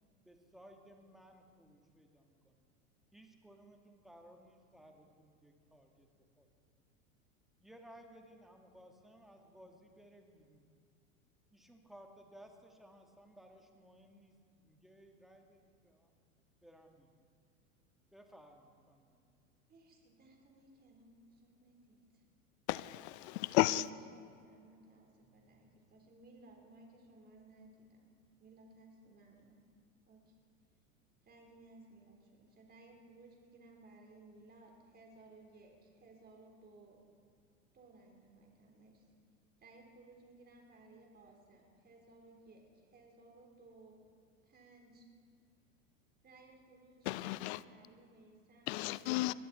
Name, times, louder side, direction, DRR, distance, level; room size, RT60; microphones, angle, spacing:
voice 1, 0.2-2.6 3.1-6.1 6.4-6.5 7.6-10.7 11.5-14.4 14.6-16.1 16.6-17.1 18.1-19.4 25.2-25.7, equal, ahead, 2.2 m, -59 dB
voice 2, 19.7-22.2 23.8-28.1 28.4-29.6 30.1-30.3 31.3-37.0 37.7-39.1 39.6-44.0 44.4-45.1 46.2-49.4, right 2 dB, 25° right, 4.3 m, -60 dB
voice 3, 22.7-23.9 47.1-47.6 48.7-49.3, left 17 dB, 55° left, 0.6 m, -33 dB
22.0 x 13.0 x 4.5 m
hypercardioid pair, 95°, 40 cm